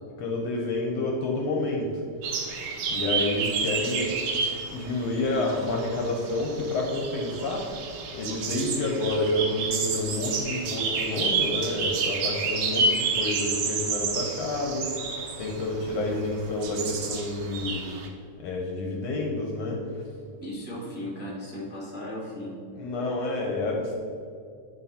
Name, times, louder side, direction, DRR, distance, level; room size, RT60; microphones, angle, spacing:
voice 1, 0.2-2.0 2.9-4.2 4.7-7.7 8.1-15.1 15.4-17.8 18.4-19.8 22.8-23.9, left 2 dB, 70° left, 0 dB, 1.9 m, -29 dB
sound 1, 2.2-18.1, right 4 dB, 85° right, 1.1 m, -30 dB
voice 2, 20.4-22.5, left 1 dB, 5° right, -6 dB, 1.1 m, -36 dB
11.0 x 3.8 x 4.3 m, 2.4 s
omnidirectional pair, 3.4 m